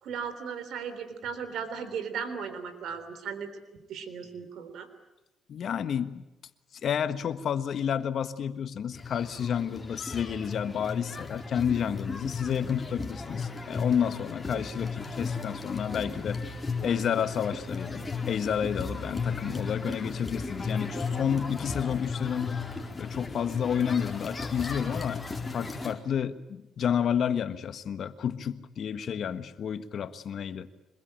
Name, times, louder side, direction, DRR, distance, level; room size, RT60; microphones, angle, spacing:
voice 1, 0.0-3.5 3.9-4.9 14.5-14.6, right 6 dB, 75° right, 10 dB, 3.5 m, -36 dB
voice 2, 5.5-6.3 6.8-16.4 16.8-22.6 23.0-25.2 25.5-30.7, left 8 dB, 60° left, 12 dB, 1.5 m, -30 dB
sound 1, 8.9-25.9, left 4 dB, 20° left, 4.4 m, -35 dB
25.0 x 22.0 x 9.0 m, 0.98 s
cardioid pair, 90°, 0 cm